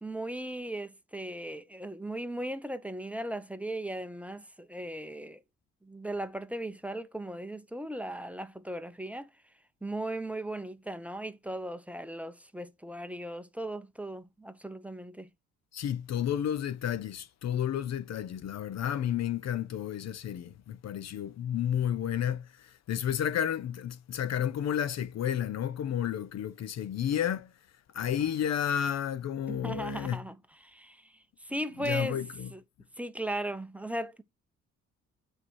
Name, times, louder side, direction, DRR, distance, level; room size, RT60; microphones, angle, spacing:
voice 1, 0.0-5.4 5.8-9.3 9.8-15.3 29.5-30.4 30.6-31.0 31.4-32.2 32.5-32.6 33.0-34.2, right 1 dB, 5° right, 0.9 m, -37 dB
voice 2, 15.7-27.5 27.9-30.2 31.8-32.5, left 9 dB, 60° left, 0.7 m, -31 dB
8.7 x 4.7 x 4.6 m
cardioid pair, 90°, 30 cm